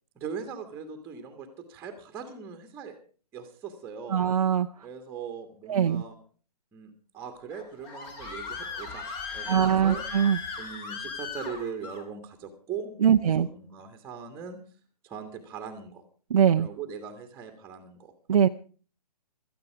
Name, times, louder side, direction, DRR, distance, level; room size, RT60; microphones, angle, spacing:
voice 1, 0.2-3.0 3.3-4.3 4.8-6.2 6.7-10.0 10.6-14.6 15.0-16.0 16.6-18.1, right 6 dB, 10° right, 6 dB, 1.9 m, -40 dB
voice 2, 4.1-4.7 5.7-6.0 9.5-10.4 13.0-13.5 16.3-16.7 18.3-18.5, right 8 dB, 55° right, 5 dB, 0.7 m, -22 dB
Screaming, 7.5-12.0, left 5 dB, 25° left, 3.5 m, -37 dB
17.5 x 13.0 x 4.8 m, 0.40 s
figure-of-eight pair, 135°, 21 cm